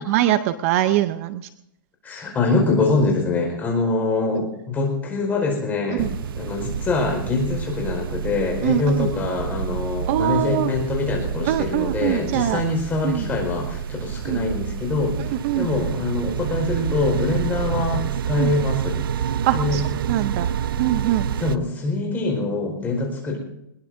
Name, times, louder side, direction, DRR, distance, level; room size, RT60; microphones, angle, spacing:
voice 1, 0.1-1.5 5.9-6.1 8.6-9.1 10.1-10.7 11.4-12.6 13.0-13.3 14.2-14.4 15.2-15.7 18.4-18.5 19.4-20.5 20.8-21.3, right 13 dB, 40° right, 11 dB, 0.7 m, -23 dB
voice 2, 2.0-15.2 15.5-19.3 19.5-19.8 21.4-23.4, left 3 dB, 15° left, 0 dB, 4.7 m, -24 dB
sound 1, 6.0-21.6, right 8 dB, 75° right, 0.6 m, -28 dB
22.0 x 21.0 x 2.7 m, 0.83 s
hypercardioid pair, 155°, 12 cm